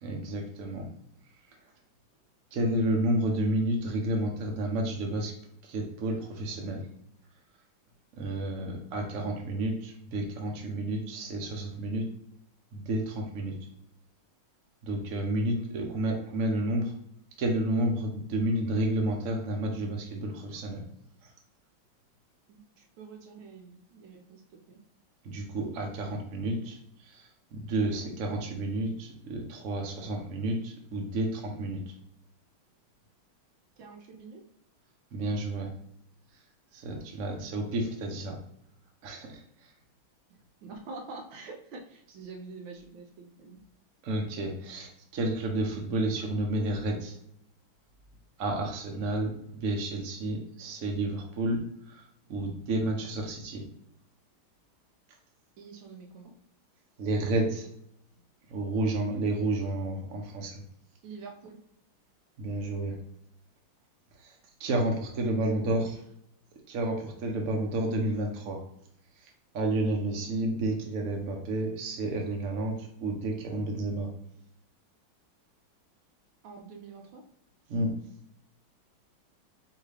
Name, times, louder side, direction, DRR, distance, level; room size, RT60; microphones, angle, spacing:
voice 1, 0.0-0.8 2.5-5.3 5.6-6.9 8.2-12.0 12.7-13.6 14.8-16.9 17.4-20.8 25.2-26.8 27.0-31.8 35.1-35.7 36.7-38.4 39.0-39.4 44.0-47.2 48.4-51.6 51.9-53.6 57.0-57.7 58.5-60.6 62.4-62.9 64.2-64.3 64.6-66.0 66.7-68.6 69.5-74.1 77.7-77.9, right 1 dB, 55° right, 1 dB, 1.0 m, -30 dB
voice 2, 22.5-24.8 27.9-28.1 33.8-34.4 40.6-43.6 55.6-56.3 61.0-61.6 65.3-66.0 76.4-77.2, right 4 dB, 75° right, 3 dB, 1.3 m, -46 dB
4.8 x 2.9 x 3.3 m, 0.73 s
omnidirectional pair, 2.2 m